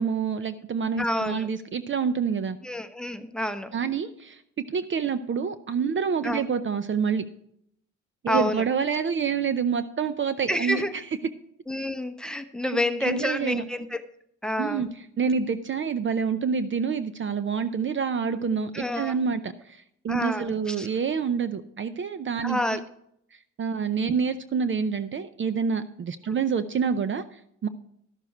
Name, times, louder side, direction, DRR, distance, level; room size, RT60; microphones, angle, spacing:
voice 1, 0.0-2.6 3.7-4.4 4.7-7.2 8.2-10.8 12.6-13.6 14.6-14.9 15.2-22.8 23.6-27.7, right 6 dB, 40° right, 12 dB, 0.6 m, -27 dB
voice 2, 1.0-1.5 2.6-3.7 6.2-6.4 8.3-8.6 10.5-11.0 11.7-14.0 14.4-14.9 18.7-19.1 20.1-20.9 22.4-22.8, left 1 dB, 5° left, 10 dB, 0.9 m, -28 dB
12.5 x 6.8 x 4.4 m, 0.72 s
cardioid pair, 90°, 30 cm